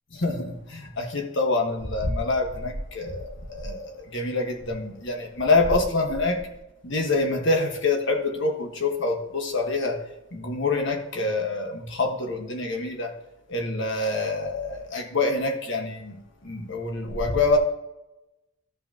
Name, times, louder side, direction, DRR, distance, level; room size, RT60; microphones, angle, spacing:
voice 1, 0.1-6.4 6.8-10.0 10.3-13.2 13.5-17.6, left 3 dB, 65° left, 2 dB, 1.4 m, -26 dB
14.0 x 5.4 x 2.9 m, 0.94 s
head